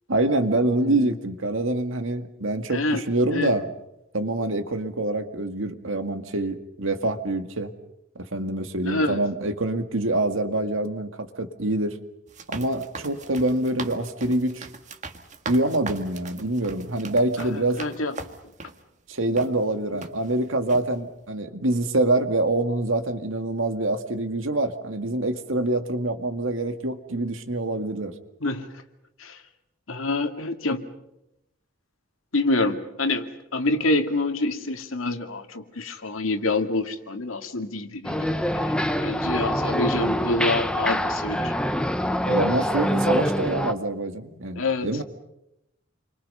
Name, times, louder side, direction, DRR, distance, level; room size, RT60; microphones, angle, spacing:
voice 1, 0.1-3.7 4.1-7.7 8.2-12.0 12.5-14.7 15.5-17.8 19.1-28.1 42.3-45.0, right 2 dB, 75° right, 7 dB, 2.1 m, -25 dB
voice 2, 0.8-1.2 2.7-3.0 3.3-3.5 8.8-9.2 17.4-18.2 28.4-28.7 29.2-29.4 29.9-30.8 32.3-38.7 39.0-41.5 44.6-44.9, left 2 dB, 85° left, 6 dB, 2.2 m, -27 dB
sound 1, 12.3-18.8 19.4-19.5 20.0-20.4 20.7-20.9, right 4 dB, 35° right, 1.8 m, -39 dB
sound 2, 38.0-43.7, equal, 5° left, 1.0 m, -25 dB
29.5 x 24.5 x 5.6 m, 0.86 s
head